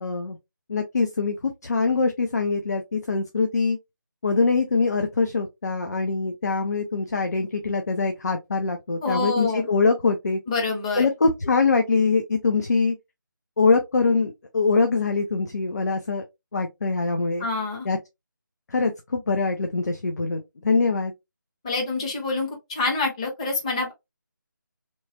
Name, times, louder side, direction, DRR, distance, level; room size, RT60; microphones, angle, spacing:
voice 1, 0.0-0.4 0.7-3.8 4.2-10.4 11.0-13.0 13.6-16.2 16.5-17.5 17.8-18.0 18.7-21.1, left 4 dB, 55° left, 0.6 m, -23 dB
voice 2, 9.0-9.7 10.5-11.1 17.4-17.9 21.6-23.9, left 3 dB, 15° left, 0.8 m, -26 dB
3.2 x 3.1 x 2.6 m
figure-of-eight pair, 160°, 11 cm